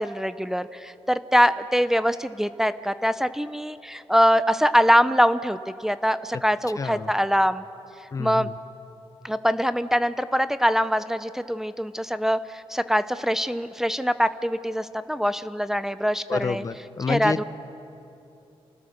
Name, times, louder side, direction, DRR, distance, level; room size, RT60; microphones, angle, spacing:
voice 1, 0.0-7.6 8.2-8.5 9.2-16.6 17.1-17.4, equal, 5° right, 12 dB, 0.5 m, -23 dB
voice 2, 6.8-7.1 8.1-8.6 16.3-17.4, left 5 dB, 35° left, 13 dB, 0.7 m, -29 dB
28.5 x 16.0 x 6.6 m, 2.7 s
wide cardioid pair, 140°, 10 cm